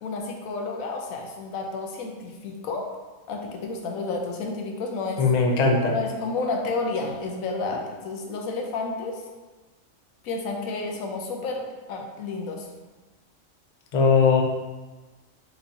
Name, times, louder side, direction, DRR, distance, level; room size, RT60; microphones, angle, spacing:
voice 1, 0.0-2.9 3.3-5.2 5.9-9.2 10.2-12.7, left 3 dB, 90° left, 1 dB, 1.1 m, -31 dB
voice 2, 5.2-5.9 13.9-14.4, left 4 dB, 45° left, 0 dB, 0.6 m, -19 dB
4.5 x 4.0 x 2.7 m, 1.2 s
omnidirectional pair, 1.4 m